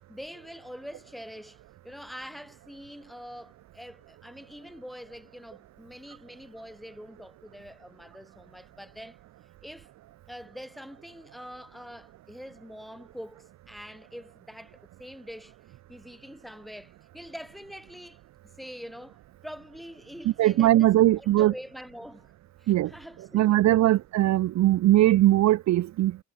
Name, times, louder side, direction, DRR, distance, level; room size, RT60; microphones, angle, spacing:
voice 1, 0.1-9.2 9.6-9.9 10.3-18.2 18.6-19.2 19.4-22.3 22.6-24.0, equal, ahead, 4.7 m, -44 dB
voice 2, 20.4-21.5 22.7-22.9 23.3-26.2, right 15 dB, 65° right, 0.6 m, -20 dB
cardioid pair, 90°, 30 cm